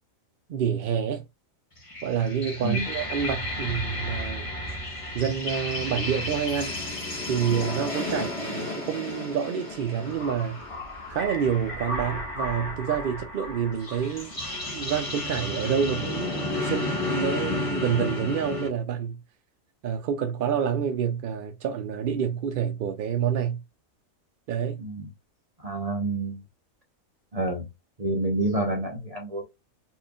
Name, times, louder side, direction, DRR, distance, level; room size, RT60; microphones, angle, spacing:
voice 1, 0.5-1.3 2.0-4.5 5.1-6.7 7.3-10.6 11.1-14.3 14.7-19.2 19.8-23.6 24.5-24.8, right 8 dB, 70° right, 0.5 m, -28 dB
sound 1, 1.8-18.7, left 2 dB, 25° left, 1.2 m, -32 dB
voice 2, 25.6-26.4 27.3-27.6 28.0-29.4, right 2 dB, 30° right, 0.8 m, -28 dB
4.4 x 3.1 x 2.3 m
omnidirectional pair, 1.4 m